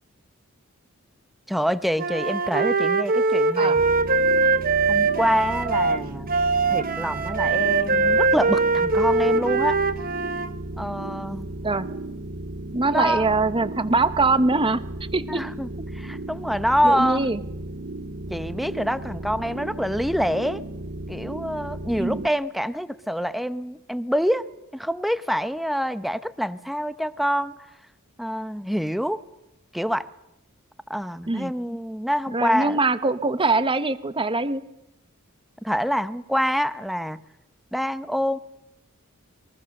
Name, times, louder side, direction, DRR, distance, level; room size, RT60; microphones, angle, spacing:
voice 1, 1.5-3.9 4.9-6.3 6.7-9.8 10.8-11.5 12.9-13.4 15.3-17.3 18.3-20.6 21.1-24.4 24.7-27.6 28.2-29.2 29.7-30.1 30.9-32.8 35.6-37.2 37.7-38.4, equal, ahead, 13 dB, 0.8 m, -26 dB
Wind instrument woodwind instrument, 2.0-10.5, right 3 dB, 45° right, 1.2 m, -22 dB
sound 1, 3.7-22.3, right 2 dB, 65° right, 1.9 m, -35 dB
voice 2, 12.7-14.8 15.1-15.4 16.8-17.4 22.0-22.2 31.3-31.5 32.3-34.6, right 3 dB, 25° right, 13 dB, 1.0 m, -22 dB
29.0 x 22.0 x 6.6 m, 0.89 s
head